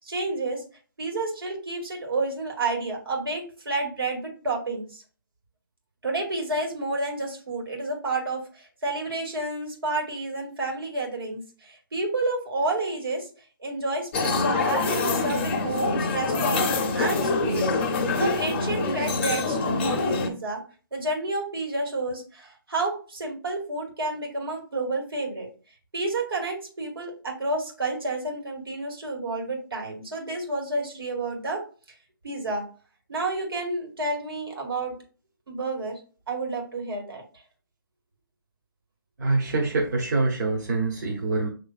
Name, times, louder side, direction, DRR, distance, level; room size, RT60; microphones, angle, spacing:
voice 1, 0.0-0.6 1.0-5.0 6.0-13.3 13.6-17.7 18.2-20.6 20.9-25.5 25.9-31.6 32.2-32.6 33.1-34.9 35.5-36.0 36.3-37.4, right 2 dB, 75° right, -1 dB, 2.0 m, -30 dB
sound 1, 14.1-20.3, left 3 dB, 30° left, 0.7 m, -25 dB
voice 2, 39.2-41.5, right 3 dB, 50° right, -2 dB, 1.1 m, -25 dB
6.2 x 3.2 x 2.4 m, 0.37 s
figure-of-eight pair, 145°, 12 cm